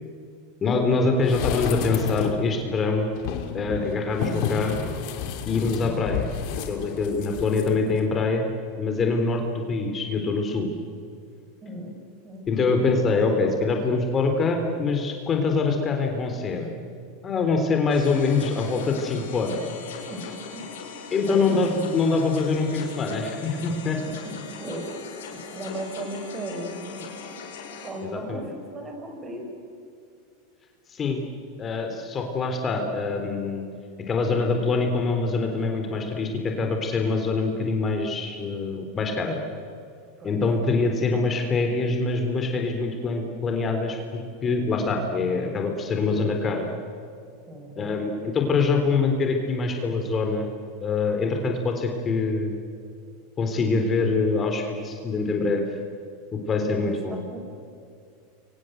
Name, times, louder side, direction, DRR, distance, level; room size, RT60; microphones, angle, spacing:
voice 1, 0.6-3.1 3.5-4.8 5.5-6.3 6.7-8.5 8.8-10.7 12.5-16.7 17.2-19.6 21.1-24.0 28.0-28.5 30.9-31.2 31.6-33.6 34.1-39.4 40.2-46.7 47.8-50.5 50.8-52.6 53.4-55.6 56.3-57.2, left 4 dB, 30° left, 3 dB, 3.8 m, -24 dB
sound 1, 1.2-2.5 3.2-7.7 8.0-8.1, left 7 dB, 60° left, 3.3 m, -30 dB
voice 2, 11.6-11.9 12.2-12.8 20.1-20.7 21.3-21.8 24.0-27.1 27.8-29.5 40.2-40.4 47.5-48.4 56.8-57.0 57.3-57.4, right 1 dB, 25° right, 3 dB, 7.3 m, -37 dB
sound 2, 17.9-27.9, left 6 dB, 80° left, 6.5 m, -40 dB
29.5 x 24.5 x 8.1 m, 2.4 s
hypercardioid pair, 105°, 0 cm